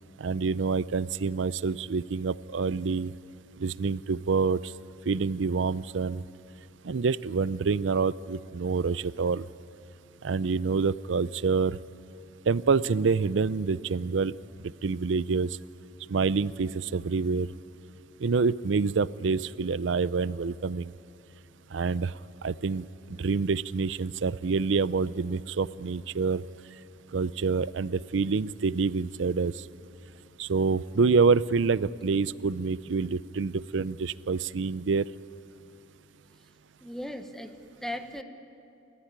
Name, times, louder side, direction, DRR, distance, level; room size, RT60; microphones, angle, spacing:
voice 1, 0.2-3.1 3.6-4.7 5.1-6.2 6.8-9.5 10.2-11.8 12.5-14.3 14.8-15.6 16.1-17.5 18.2-20.9 21.7-22.1 22.4-26.4 27.1-29.6 30.4-35.0, right 4 dB, 85° right, 18 dB, 0.5 m, -27 dB
voice 2, 36.8-38.2, left 1 dB, ahead, 6 dB, 1.1 m, -37 dB
29.0 x 15.0 x 9.6 m, 2.7 s
head